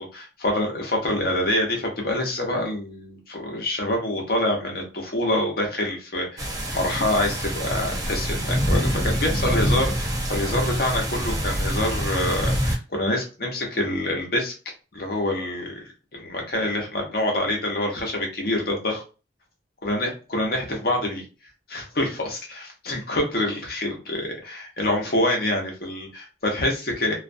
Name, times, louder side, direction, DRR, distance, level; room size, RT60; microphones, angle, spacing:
voice 1, 0.0-14.5 14.9-15.7 16.1-19.0 19.8-21.2 21.7-27.2, left 1 dB, 55° left, 1 dB, 0.8 m, -26 dB
sound 1, 6.4-12.8, equal, 20° right, 0.5 m, -25 dB
2.5 x 2.2 x 2.5 m, 0.33 s
head